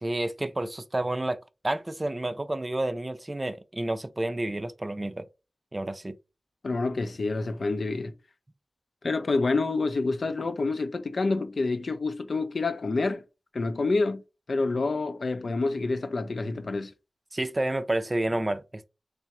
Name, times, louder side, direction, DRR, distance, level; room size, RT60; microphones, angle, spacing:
voice 1, 0.0-1.4 1.6-5.2 5.7-6.2 17.3-18.9, right 1 dB, 30° right, 0.4 m, -30 dB
voice 2, 6.6-8.1 9.0-13.2 13.5-14.2 14.5-16.9, left 3 dB, 80° left, 0.5 m, -27 dB
3.7 x 3.3 x 3.0 m
wide cardioid pair, 65°, 0 cm